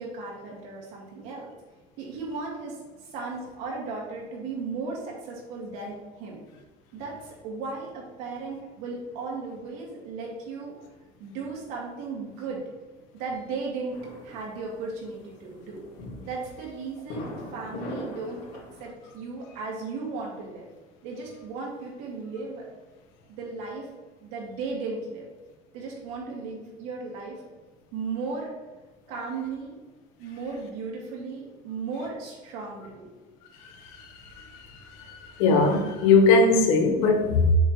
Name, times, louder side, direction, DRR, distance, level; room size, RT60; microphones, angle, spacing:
voice 1, 0.0-1.5 2.0-6.4 6.9-10.8 11.2-12.6 13.1-14.0 14.2-15.8 16.2-18.4 18.8-20.7 21.0-22.7 23.3-23.9 24.2-25.3 25.7-27.4 27.9-28.5 29.1-29.7 30.2-33.1, right 4 dB, 90° right, 2.4 m, -36 dB
sound 1, 13.9-18.9, left 1 dB, 65° left, 2.4 m, -41 dB
voice 2, 33.8-37.6, left 3 dB, 85° left, 1.3 m, -21 dB
7.1 x 3.3 x 6.0 m
cardioid pair, 175°, 18 cm